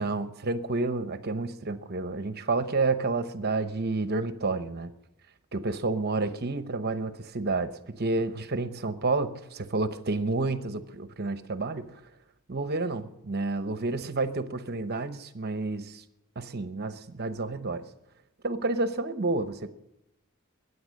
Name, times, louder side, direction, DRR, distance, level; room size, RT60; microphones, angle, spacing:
voice 1, 0.0-4.9 5.5-12.0 12.5-16.0 16.4-17.8 18.4-19.7, right 3 dB, 50° right, 0.9 m, -30 dB
22.0 x 9.8 x 6.5 m
head